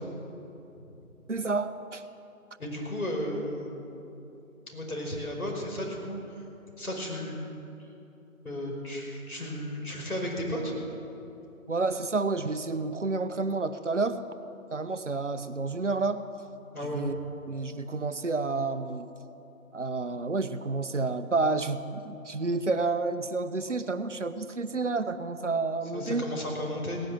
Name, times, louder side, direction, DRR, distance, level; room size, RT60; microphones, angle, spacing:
voice 1, 1.3-2.0 11.7-14.2 14.7-16.2 16.9-17.2 17.5-19.1 19.7-26.2, right 3 dB, 55° right, 11 dB, 0.9 m, -30 dB
voice 2, 2.6-3.8 4.7-6.2 6.8-7.4 8.4-10.7 16.7-17.1 25.9-27.0, left 1 dB, 85° left, -1 dB, 5.0 m, -34 dB
17.5 x 10.5 x 7.7 m, 2.8 s
figure-of-eight pair, 165°, 42 cm